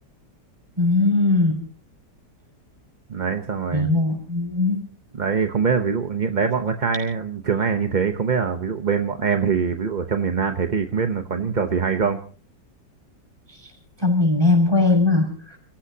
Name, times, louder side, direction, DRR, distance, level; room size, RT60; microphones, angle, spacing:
voice 1, 0.8-1.6 3.7-4.8 13.6-13.7 14.0-15.6, left 2 dB, 15° right, 3 dB, 5.9 m, -19 dB
voice 2, 3.1-3.9 5.1-12.2, right 6 dB, 35° right, 6 dB, 0.8 m, -23 dB
29.5 x 16.5 x 2.8 m, 0.39 s
omnidirectional pair, 1.9 m